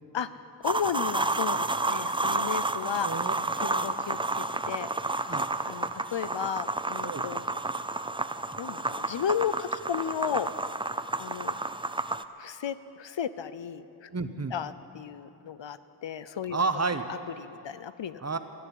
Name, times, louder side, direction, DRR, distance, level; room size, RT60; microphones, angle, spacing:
voice 1, 0.6-3.1 3.6-4.2 4.7-4.9 5.7-7.4 8.6-10.5 11.2-11.6 12.4-14.1 14.5-16.6 17.1-18.2, left 8 dB, 85° left, 14 dB, 0.6 m, -34 dB
sound 1, 0.6-12.2, right 2 dB, 10° right, 0.4 m, -30 dB
voice 2, 3.0-3.3 3.6-3.9 5.3-5.5 7.0-7.2 14.1-14.5 16.5-17.0 18.2-18.4, right 4 dB, 35° right, 9 dB, 0.9 m, -30 dB
13.0 x 11.0 x 9.9 m, 2.8 s
wide cardioid pair, 50°, 43 cm